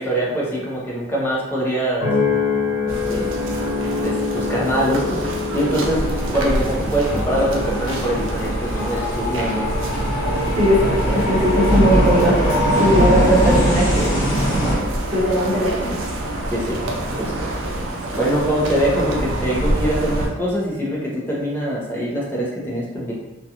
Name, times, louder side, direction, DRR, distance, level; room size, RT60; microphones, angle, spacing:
voice 1, 0.0-2.1 2.8-3.3 4.0-5.2 5.5-9.7 12.8-12.9 16.5-16.8 17.2-17.5 17.8-17.9 18.2-23.1, right 1 dB, 10° left, -5 dB, 0.5 m, -23 dB
sound 1, 2.0-16.5 17.0-17.4, left 4 dB, 85° left, 0.9 m, -29 dB
sound 2, 2.9-20.3, right 1 dB, 80° right, 0.4 m, -27 dB
sound 3, 5.7-14.8, equal, 40° left, 1.0 m, -21 dB
voice 2, 10.6-12.4 12.8-14.2 15.1-16.0, equal, 30° right, -9 dB, 0.9 m, -19 dB
2.4 x 2.2 x 2.8 m, 0.99 s
head